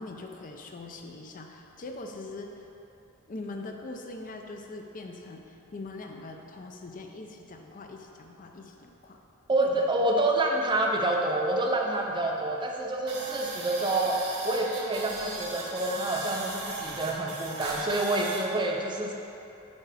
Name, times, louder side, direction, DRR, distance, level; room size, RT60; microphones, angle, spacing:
voice 1, 0.0-2.7 3.3-9.2 9.6-9.9, left 2 dB, 40° left, 3 dB, 0.5 m, -42 dB
voice 2, 9.5-19.1, right 2 dB, 20° right, 0 dB, 0.6 m, -28 dB
sound 1, 13.1-18.4, right 2 dB, 70° right, 1.4 m, -37 dB
7.9 x 4.7 x 4.1 m, 2.8 s
head